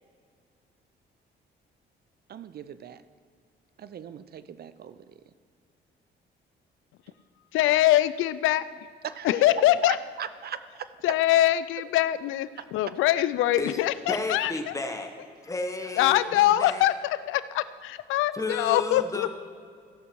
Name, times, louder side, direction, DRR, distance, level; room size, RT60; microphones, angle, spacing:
voice 1, 2.3-3.0 3.8-5.1 9.0-9.5 9.8-10.9, right 9 dB, 50° right, 13 dB, 0.6 m, -39 dB
voice 2, 7.5-8.9 9.2-10.0 11.0-14.7 15.9-19.3, left 14 dB, 90° left, 15 dB, 0.4 m, -23 dB
voice 3, 14.1-15.1 15.4-16.9 18.3-19.4, left 3 dB, 15° left, 3 dB, 1.4 m, -32 dB
16.0 x 6.3 x 4.6 m, 2.2 s
cardioid pair, 90°, 20 cm